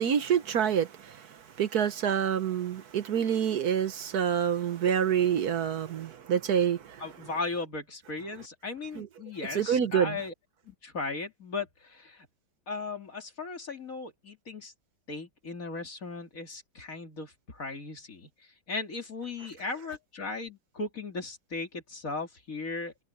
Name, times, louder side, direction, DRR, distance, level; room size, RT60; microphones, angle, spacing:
voice 1, 0.0-7.0 9.0-9.1 9.5-10.2, right 8 dB, 60° right, 1.3 m, -27 dB
voice 2, 7.0-10.3 10.6-12.3 12.7-14.7 15.1-23.0, left 3 dB, 45° left, 3.1 m, -37 dB
omnidirectional pair, 2.1 m